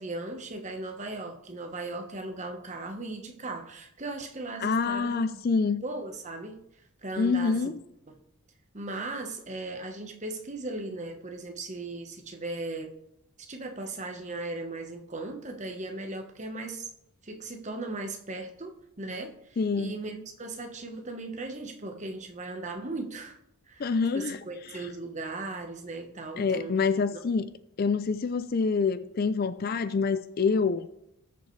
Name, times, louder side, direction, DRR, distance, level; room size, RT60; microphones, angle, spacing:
voice 1, 0.0-5.2 5.8-6.6 7.0-7.7 8.7-12.9 13.5-16.9 17.2-23.4 23.7-26.8 27.1-27.2, right 2 dB, 30° right, 1.1 m, -37 dB
voice 2, 4.6-5.8 7.2-7.8 19.6-20.0 23.8-24.4 24.7-24.8 26.4-27.5 27.8-30.9, left 4 dB, 40° left, 0.4 m, -26 dB
19.0 x 6.9 x 3.2 m
head